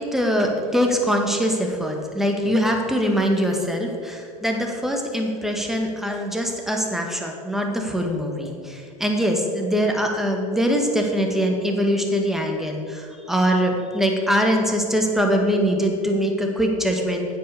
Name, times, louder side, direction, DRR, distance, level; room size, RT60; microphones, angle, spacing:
voice 1, 0.0-17.4, equal, ahead, 2 dB, 1.8 m, -23 dB
9.4 x 7.8 x 6.7 m, 2.3 s
hypercardioid pair, 85°, 20 cm